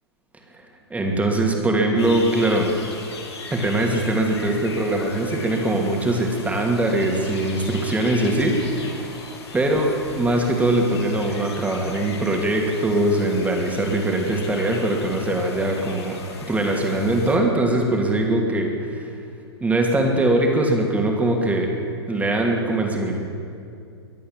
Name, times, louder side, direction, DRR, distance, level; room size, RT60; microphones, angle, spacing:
voice 1, 0.5-2.7 3.5-9.1 9.5-9.9 10.2-16.2 16.5-19.1 19.6-21.7 22.1-23.2, right 1 dB, 10° right, 1 dB, 2.5 m, -22 dB
sound 1, 2.0-17.4, left 4 dB, 70° left, 2.7 m, -38 dB
23.0 x 8.4 x 7.5 m, 2.4 s
hypercardioid pair, 110°, 14 cm